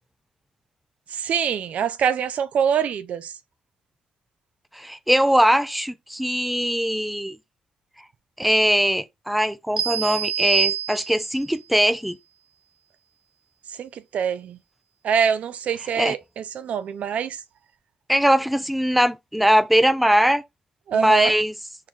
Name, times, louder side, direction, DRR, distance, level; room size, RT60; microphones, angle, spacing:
voice 1, 1.1-3.3 13.8-14.6 15.0-17.4 20.9-21.3, right 7 dB, 65° right, 0.4 m, -24 dB
voice 2, 4.7-7.4 8.4-12.2 16.0-16.1 18.1-20.4 20.9-21.5, equal, ahead, 0.4 m, -21 dB
sound 1, 9.8-11.5, right 8 dB, 40° right, 1.4 m, -26 dB
4.5 x 2.3 x 3.5 m
supercardioid pair, 65°, 3 cm